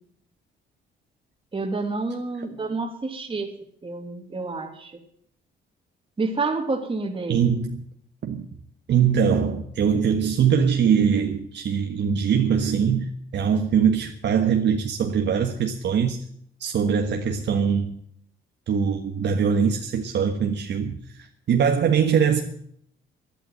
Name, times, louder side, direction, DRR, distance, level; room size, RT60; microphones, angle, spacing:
voice 1, 1.5-3.5 3.8-5.0 6.2-7.5, right 3 dB, 25° right, 2.5 m, -29 dB
voice 2, 7.3-7.8 8.2-8.5 8.9-16.2 16.6-17.9 18.7-21.0 21.5-22.4, right 7 dB, 65° right, 1.5 m, -22 dB
11.5 x 11.5 x 7.8 m
cardioid pair, 90°, 20 cm